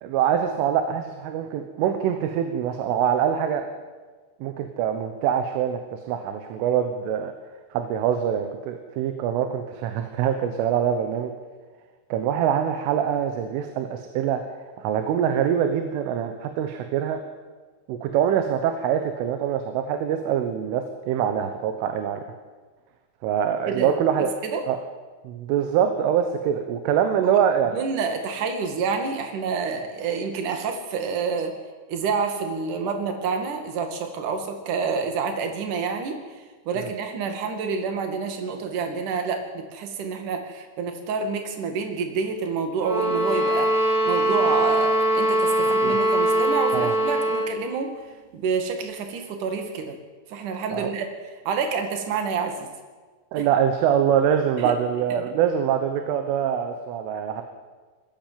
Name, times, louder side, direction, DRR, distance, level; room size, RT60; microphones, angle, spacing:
voice 1, 0.0-3.7 4.4-7.3 7.7-11.3 12.1-14.4 14.8-17.2 17.9-22.2 23.2-24.3 24.7-24.8 25.3-27.7 36.8-36.9 45.7-46.0 46.7-47.0 50.7-50.9 53.3-57.4, right 9 dB, 80° right, 7 dB, 3.7 m, -24 dB
voice 2, 23.7-24.6 27.2-27.4 27.7-31.5 31.9-47.9 48.3-50.0 50.3-51.1 51.4-52.7 53.4-53.5 54.6-54.7, right 5 dB, 50° right, 5 dB, 3.1 m, -28 dB
sound 1, 42.8-47.5, right 1 dB, 25° right, 4.7 m, -22 dB
21.0 x 16.5 x 7.6 m, 1.4 s
omnidirectional pair, 5.6 m